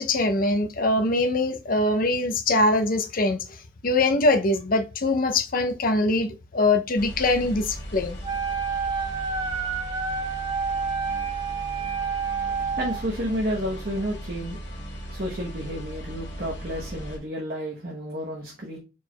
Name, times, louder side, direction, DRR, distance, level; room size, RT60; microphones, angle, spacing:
voice 1, 0.0-3.4 3.8-8.2, left 2 dB, 55° left, 0.7 m, -23 dB
sound 1, 7.0-17.2, equal, 90° left, 1.7 m, -37 dB
Wind instrument woodwind instrument, 8.2-13.0, right 5 dB, 25° right, 0.7 m, -29 dB
voice 2, 12.7-14.6 15.1-18.8, equal, 60° right, 1.1 m, -31 dB
4.6 x 4.5 x 2.3 m
head